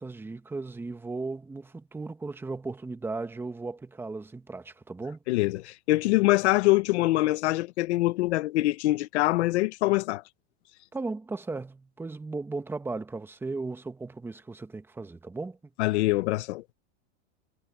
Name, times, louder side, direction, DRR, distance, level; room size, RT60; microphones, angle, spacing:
voice 1, 0.0-5.2 10.9-15.6, right 3 dB, 5° right, 1.2 m, -36 dB
voice 2, 5.3-10.2 15.8-16.6, left 19 dB, 65° left, 1.0 m, -24 dB
supercardioid pair, 150°, 36 cm